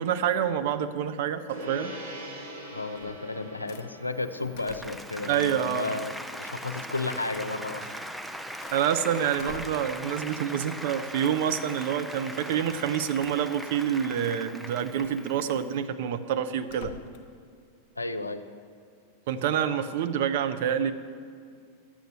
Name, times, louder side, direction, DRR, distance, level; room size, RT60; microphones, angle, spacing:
voice 1, 0.0-1.9 5.3-5.9 8.7-16.9 19.3-20.9, right 9 dB, 50° right, 10 dB, 0.6 m, -27 dB
Gong, 1.5-11.2, equal, 75° right, 3.6 m, -46 dB
voice 2, 2.7-7.9 18.0-18.4, left 3 dB, 80° left, 9 dB, 0.5 m, -33 dB
sound 1, 2.9-3.3 3.7-3.9 4.5-5.1 5.5-5.8 7.3-7.5 8.1-8.9 9.4-10.0 11.2-11.5 13.2-13.6 14.9-15.2 16.7-17.3, left 7 dB, 45° left, 0.9 m, -47 dB
Applause, 4.2-15.8, equal, ahead, 0.5 m, -40 dB
11.5 x 7.9 x 6.7 m, 2.1 s
figure-of-eight pair, 90°, 0 cm